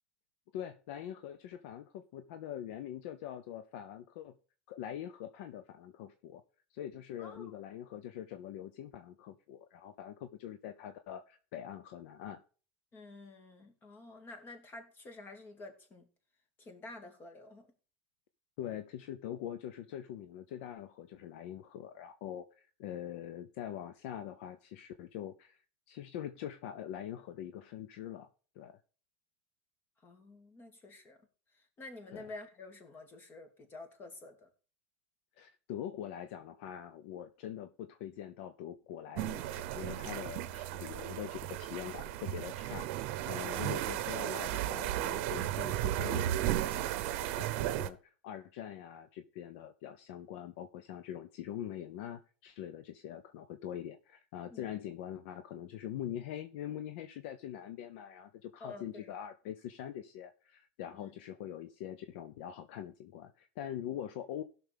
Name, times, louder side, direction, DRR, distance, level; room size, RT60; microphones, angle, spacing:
voice 1, 0.5-4.4 4.7-6.4 6.7-12.4 18.6-25.6 25.9-28.3 28.6-28.8 32.1-32.3 35.4-42.9 43.3-64.4, left 10 dB, 70° left, 0.7 m, -43 dB
voice 2, 12.9-16.1 16.6-17.7 30.0-31.2 31.8-34.5 43.5-43.6 47.6-47.7 54.5-54.7 58.6-59.1 60.9-61.1, left 2 dB, 30° left, 2.5 m, -49 dB
sound 1, 39.1-47.9, right 13 dB, 65° right, 0.7 m, -35 dB
17.0 x 6.1 x 3.5 m
supercardioid pair, 115°, 7 cm